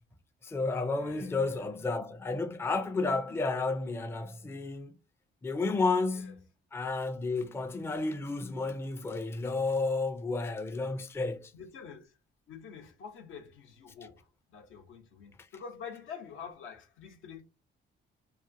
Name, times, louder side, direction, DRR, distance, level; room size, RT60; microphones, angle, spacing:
voice 1, 0.4-4.9 5.4-6.4 6.7-11.5, left 3 dB, 10° left, 0.4 m, -31 dB
voice 2, 0.9-1.6 6.1-6.3 11.5-12.1 12.5-17.4, left 6 dB, 80° left, 0.8 m, -47 dB
2.4 x 2.4 x 2.6 m
cardioid pair, 90°, 20 cm